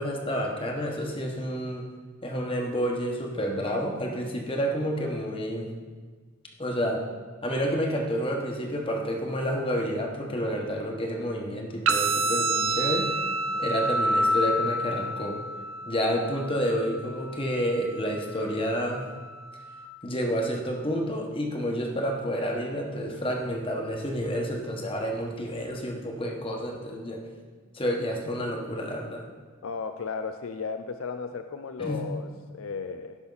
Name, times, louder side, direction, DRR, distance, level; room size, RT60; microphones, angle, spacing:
voice 1, 0.0-1.9 2.2-5.7 6.6-7.0 7.4-13.1 13.6-15.4 15.9-19.0 20.0-27.2 27.7-29.3 31.8-32.0, equal, 25° left, 1 dB, 1.3 m, -29 dB
sound 1, 11.9-19.8, right 1 dB, 90° right, 0.8 m, -29 dB
voice 2, 29.6-33.2, left 5 dB, 70° left, 8 dB, 0.5 m, -35 dB
16.5 x 6.0 x 4.0 m, 1.5 s
head